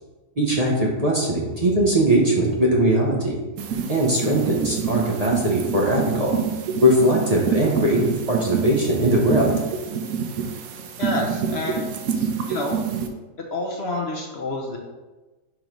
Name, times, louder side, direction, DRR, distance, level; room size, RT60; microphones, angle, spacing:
voice 1, 0.4-3.4 3.9-6.4 6.8-9.5, right 1 dB, 35° right, -3 dB, 0.7 m, -20 dB
sound 1, 3.6-13.1, right 6 dB, 65° right, 1.0 m, -27 dB
voice 2, 11.0-12.8 13.5-14.8, left 2 dB, 55° left, 0 dB, 0.8 m, -29 dB
6.1 x 3.1 x 5.1 m, 1.2 s
omnidirectional pair, 1.8 m